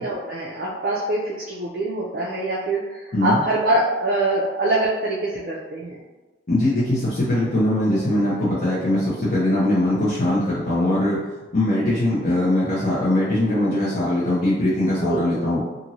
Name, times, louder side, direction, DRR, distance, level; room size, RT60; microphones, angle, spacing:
voice 1, 0.0-6.0 15.0-15.3, right 1 dB, 55° right, -5 dB, 0.4 m, -24 dB
voice 2, 3.1-3.4 6.5-11.2 11.5-15.6, left 1 dB, 50° left, -10 dB, 0.7 m, -21 dB
3.0 x 2.5 x 2.7 m, 1.2 s
head